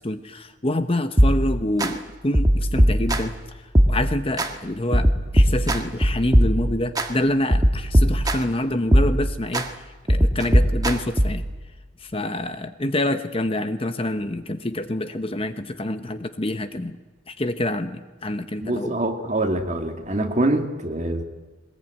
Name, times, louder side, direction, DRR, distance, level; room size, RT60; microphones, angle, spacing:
voice 1, 0.0-3.3 3.9-9.7 10.1-11.4 12.0-17.0 17.3-19.0, left 1 dB, 30° left, 9 dB, 0.9 m, -26 dB
sound 1, 1.2-1.9 2.3-3.4 3.8-4.5 4.9-7.1 7.5-8.6 8.9-9.7 10.1-11.5, equal, 20° right, 1.7 m, -20 dB
voice 2, 18.6-21.2, right 1 dB, 35° right, 4 dB, 2.4 m, -24 dB
22.0 x 20.5 x 9.3 m, 1.3 s
head